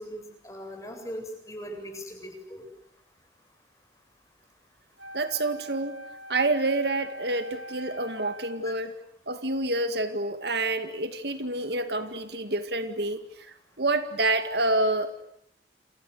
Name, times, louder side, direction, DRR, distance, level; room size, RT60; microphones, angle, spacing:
voice 1, 0.0-2.6 8.6-8.7, equal, 20° left, 3 dB, 7.5 m, -39 dB
Wind instrument woodwind instrument, 5.0-8.8, equal, 85° right, 2.8 m, -43 dB
voice 2, 5.1-6.0 6.3-8.9 9.3-15.2, right 2 dB, 65° right, 9 dB, 2.1 m, -28 dB
29.5 x 28.5 x 6.8 m, 0.74 s
head